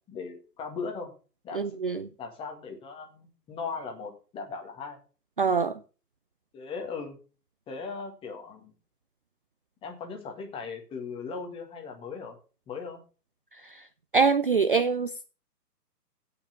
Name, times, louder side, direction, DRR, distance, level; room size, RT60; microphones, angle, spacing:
voice 1, 0.1-1.1 1.4-1.6 2.2-5.0 6.5-7.2 7.7-8.7 9.8-12.4 12.7-13.0, left 5 dB, 10° left, 1.9 m, -38 dB
voice 2, 1.5-2.0 5.4-5.8 14.1-15.3, right 5 dB, 35° right, 0.5 m, -24 dB
16.0 x 5.9 x 5.7 m
figure-of-eight pair, 130°, 48 cm